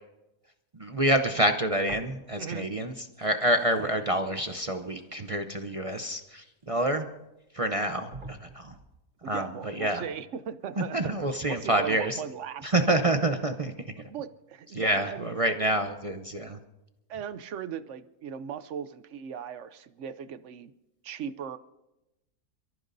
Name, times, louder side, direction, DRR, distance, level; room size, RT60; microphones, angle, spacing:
voice 1, 0.8-7.1 7.5-8.8 9.2-10.0 10.8-12.2 12.6-13.7 14.7-16.6, right 1 dB, 45° right, 6 dB, 0.4 m, -27 dB
sound 1, 1.8-2.6 2.9-6.9 7.5-7.6 8.1-9.0, right 2 dB, 80° right, 3.1 m, -49 dB
voice 2, 2.4-2.7 9.2-11.1 11.5-12.7 14.1-15.3 17.1-20.7 21.0-21.6, right 8 dB, 60° right, 13 dB, 0.8 m, -38 dB
28.5 x 14.0 x 2.6 m, 0.94 s
omnidirectional pair, 1.7 m